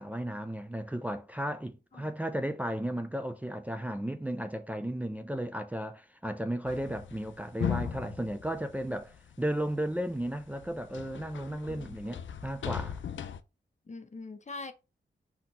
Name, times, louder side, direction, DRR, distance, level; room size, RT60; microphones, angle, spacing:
voice 1, 0.0-13.0, right 1 dB, 10° right, 0.4 m, -34 dB
sound 1, 6.6-9.6 10.1-13.4, left 8 dB, 85° left, 0.4 m, -38 dB
voice 2, 11.7-12.1 13.9-14.7, left 3 dB, 40° left, 0.6 m, -43 dB
4.2 x 2.9 x 3.8 m
wide cardioid pair, 85°, 19 cm